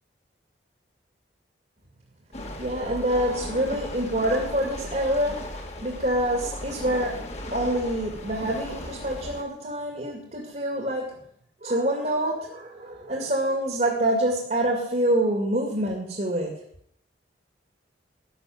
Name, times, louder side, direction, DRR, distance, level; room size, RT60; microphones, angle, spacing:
sound 1, 2.3-9.4, left 1 dB, 35° left, 1.9 m, -37 dB
voice 1, 2.6-5.4 5.8-11.1 11.6-16.6, right 1 dB, 40° right, 1 dB, 2.3 m, -26 dB
12.0 x 6.6 x 9.3 m, 0.68 s
head